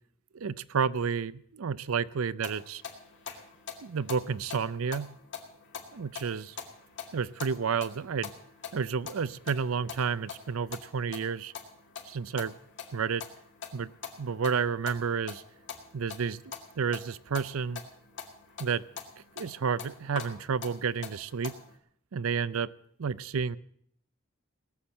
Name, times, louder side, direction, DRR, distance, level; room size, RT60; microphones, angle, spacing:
voice 1, 0.3-2.8 3.8-5.1 5.9-6.6 7.1-8.3 8.7-11.5 12.0-12.5 12.9-13.2 13.7-13.9 14.2-15.4 15.9-17.8 18.6-18.8 19.4-21.5 22.1-22.7 23.0-23.6, right 6 dB, 85° right, 18 dB, 0.5 m, -31 dB
sound 1, 2.4-21.8, left 6 dB, 60° left, 2.2 m, -45 dB
19.0 x 7.2 x 7.6 m, 0.66 s
head